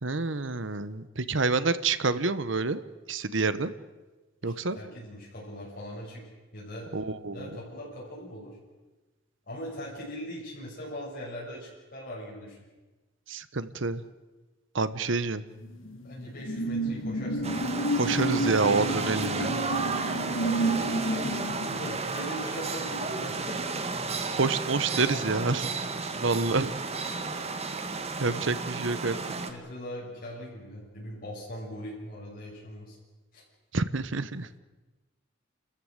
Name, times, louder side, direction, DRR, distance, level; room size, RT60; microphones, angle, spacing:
voice 1, 0.0-2.8 3.1-3.7 4.4-4.8 6.9-7.5 13.3-14.0 14.7-15.4 17.9-19.6 24.3-25.7 26.1-26.7 28.2-29.2 33.7-34.6, right 3 dB, 70° right, 14 dB, 1.1 m, -28 dB
voice 2, 4.4-6.2 6.5-6.9 7.3-8.6 9.5-12.6 16.0-17.7 19.7-23.8 25.0-25.6 27.1-27.4 28.3-28.6 29.1-33.0 33.3-33.4, equal, 50° left, -6 dB, 6.8 m, -41 dB
sound 1, 15.6-24.6 24.9-25.2, right 1 dB, 85° left, 2.3 m, -31 dB
sound 2, 17.4-29.5, right 4 dB, 35° right, 1.8 m, -33 dB
29.5 x 14.0 x 8.1 m, 1.2 s
head